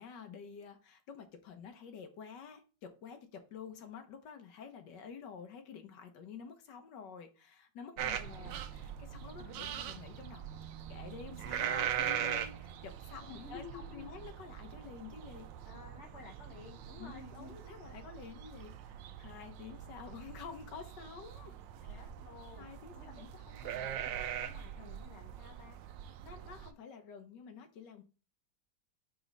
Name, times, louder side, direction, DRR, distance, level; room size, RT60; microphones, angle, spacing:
voice 1, 0.0-10.5 10.9-15.5 17.0-21.5 21.8-22.1 22.5-24.1 26.2-28.0, left 6 dB, 70° left, 7 dB, 1.6 m, -49 dB
voice 2, 7.9-8.6 9.4-9.9 13.3-14.2 15.6-17.9 21.9-22.7 22.9-23.2 23.6-25.8, left 6 dB, 55° left, 2 dB, 0.9 m, -53 dB
sound 1, 8.0-26.7, right 10 dB, 85° right, 1.3 m, -42 dB
5.1 x 3.8 x 5.2 m, 0.34 s
omnidirectional pair, 2.0 m